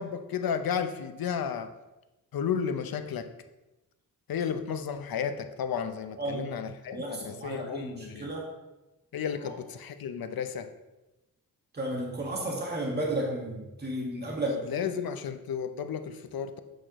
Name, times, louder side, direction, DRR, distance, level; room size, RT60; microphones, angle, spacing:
voice 1, 0.0-1.7 2.3-3.3 4.3-8.3 9.1-10.7 14.4-16.6, left 7 dB, 75° left, 0.6 m, -33 dB
voice 2, 6.9-8.5 11.7-15.0, right 1 dB, 30° right, 1.6 m, -33 dB
8.2 x 6.2 x 3.0 m
wide cardioid pair, 95°, 36 cm